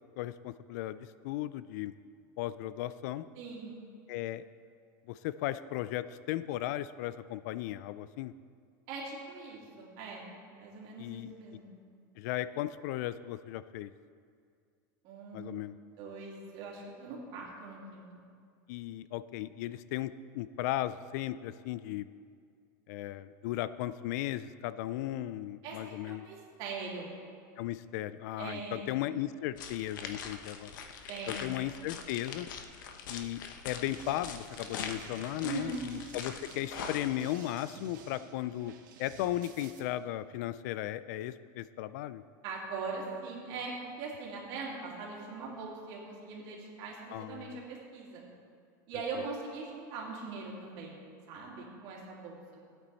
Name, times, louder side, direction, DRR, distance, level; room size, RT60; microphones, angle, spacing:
voice 1, 0.2-1.9 2.4-3.3 4.1-4.4 5.1-8.3 11.0-11.3 12.2-13.9 15.3-15.7 18.7-22.1 22.9-26.3 27.6-30.7 31.3-32.5 33.1-38.7 39.0-42.2 47.1-47.6, left 14 dB, 60° left, 15 dB, 0.4 m, -36 dB
voice 2, 3.4-3.8 8.9-11.7 15.0-15.6 16.0-18.0 25.6-27.1 28.4-29.0 31.1-31.5 35.4-35.8 42.4-48.2 48.9-51.0 51.3-52.4, right 4 dB, 50° right, -3 dB, 2.8 m, -41 dB
sound 1, 29.6-37.1, left 6 dB, 85° left, 1.0 m, -43 dB
sound 2, 33.9-39.8, right 6 dB, 85° right, 1.6 m, -52 dB
15.5 x 8.8 x 4.2 m, 2.2 s
supercardioid pair, 155°, 10 cm